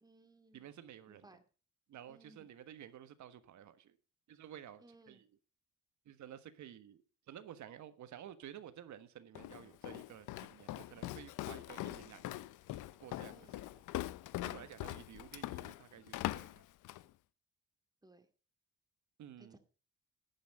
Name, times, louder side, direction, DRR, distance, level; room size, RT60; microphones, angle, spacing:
voice 1, 0.0-0.7 1.1-1.4 2.1-2.5 4.8-5.2 13.3-13.6 14.3-14.7 18.0-18.3 19.4-19.6, right 2 dB, 15° right, 2.2 m, -62 dB
voice 2, 0.5-1.3 1.9-3.9 4.3-5.2 6.0-12.5 13.0-13.5 14.4-16.6 19.2-19.5, right 10 dB, 70° right, 1.4 m, -53 dB
Walk footsteps, 9.3-17.1, left 16 dB, 85° left, 0.6 m, -42 dB
11.5 x 9.5 x 5.2 m
cardioid pair, 90°, 30 cm